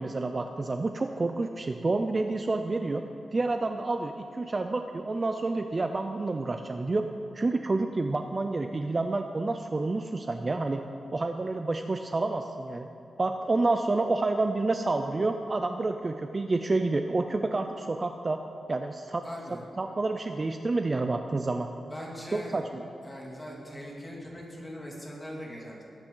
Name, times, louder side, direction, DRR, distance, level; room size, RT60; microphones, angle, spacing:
voice 1, 0.0-3.0 3.3-7.0 7.3-10.8 11.1-12.9 13.2-18.4 18.7-19.3 19.8-21.7 22.3-22.8, right 3 dB, 30° right, 6 dB, 0.5 m, -29 dB
voice 2, 19.2-19.6 21.9-22.6 23.0-25.8, equal, 10° left, -3 dB, 2.6 m, -41 dB
19.5 x 8.8 x 3.9 m, 2.9 s
wide cardioid pair, 130°, 0 cm